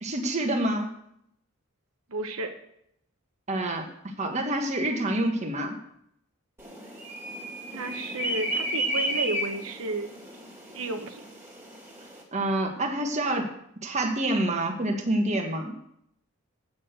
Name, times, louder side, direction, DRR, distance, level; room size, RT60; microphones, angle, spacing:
voice 1, 0.0-0.9 3.5-5.8 12.3-13.5 13.8-15.7, right 1 dB, 35° right, 3 dB, 1.4 m, -27 dB
voice 2, 2.1-2.5 7.7-10.1 10.7-11.3, right 2 dB, 80° right, 5 dB, 1.1 m, -32 dB
sound 1, 6.6-12.2, right 1 dB, 10° right, 2.3 m, -33 dB
8.7 x 6.3 x 8.0 m, 0.73 s
head